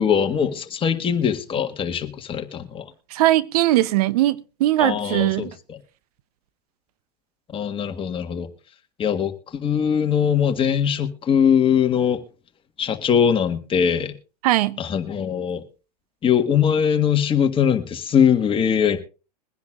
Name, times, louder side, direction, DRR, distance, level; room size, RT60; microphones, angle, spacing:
voice 1, 0.0-2.9 4.8-5.8 7.5-8.5 9.0-12.2 12.8-14.1 14.8-15.6 16.2-19.0, left 8 dB, 25° left, 1.6 m, -21 dB
voice 2, 3.1-5.5 14.4-14.8, right 15 dB, 65° right, 0.7 m, -20 dB
22.5 x 10.5 x 2.5 m
hypercardioid pair, 100°, 21 cm